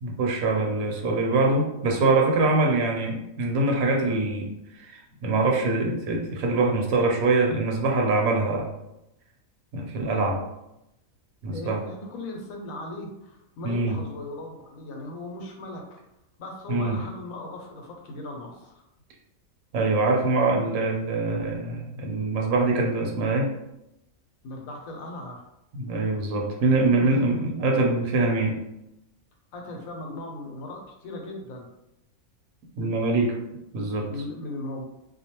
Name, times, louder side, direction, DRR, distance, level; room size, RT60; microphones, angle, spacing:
voice 1, 0.0-8.7 9.7-10.4 11.4-11.8 13.6-14.0 16.7-17.0 19.7-23.5 25.8-28.6 32.8-33.4 33.7-34.1, right 3 dB, 90° right, 1 dB, 1.1 m, -24 dB
voice 2, 11.5-16.0 16.4-18.8 24.4-25.4 26.8-27.6 29.5-31.7 34.1-34.8, left 2 dB, 80° left, 1 dB, 1.0 m, -38 dB
2.5 x 2.2 x 2.8 m, 0.86 s
omnidirectional pair, 1.4 m